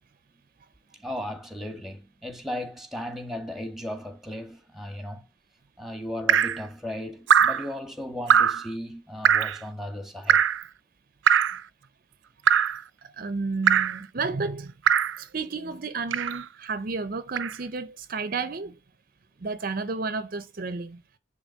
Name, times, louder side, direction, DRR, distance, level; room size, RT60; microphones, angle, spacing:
voice 1, 0.9-5.3 5.8-10.4, left 1 dB, ahead, 1.6 m, -36 dB
Drip, 6.3-6.6 7.3-7.7 8.3-8.6 9.2-9.6 10.3-10.6 11.3-11.6 12.5-12.8 13.7-14.0 14.9-15.2 16.1-16.4 17.4-17.5, right 8 dB, 85° right, 0.6 m, -21 dB
voice 2, 13.0-14.7 15.2-18.8 19.4-21.0, right 4 dB, 50° right, 0.7 m, -32 dB
10.0 x 3.5 x 6.3 m
head